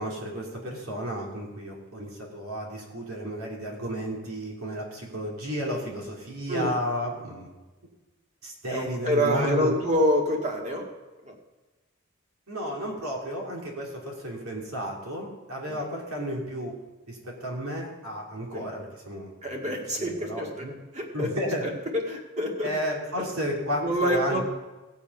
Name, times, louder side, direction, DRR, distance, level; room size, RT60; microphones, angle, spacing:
voice 1, 0.0-7.5 8.4-9.7 12.5-16.7 17.1-19.3 19.6-20.7 21.1-21.7 22.6-24.4, equal, 85° right, -2 dB, 3.1 m, -32 dB
voice 2, 8.7-10.9 11.2-11.3 15.7-15.8 18.5-18.7 19.4-20.7 20.9-21.3 21.6-21.7 22.1-22.7 23.8-24.4, equal, 30° right, 0 dB, 1.9 m, -27 dB
17.0 x 7.1 x 5.4 m, 1.1 s
head